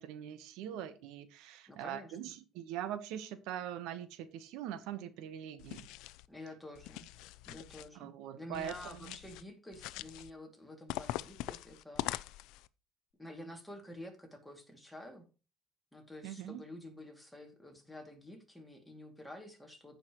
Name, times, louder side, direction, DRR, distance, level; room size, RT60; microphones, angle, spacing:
voice 1, 0.0-5.9 7.9-9.2 16.2-16.6, right 10 dB, 90° right, 1.0 m, -42 dB
voice 2, 1.7-2.2 6.3-7.1 7.5-12.4 13.2-15.3 15.9-20.0, left 1 dB, 5° left, 2.3 m, -50 dB
sound 1, 5.6-6.3 6.7-7.9 8.5-9.4 9.7-10.3 10.9-12.7, left 16 dB, 85° left, 0.4 m, -42 dB
15.0 x 5.7 x 3.0 m
cardioid pair, 140°, 0 cm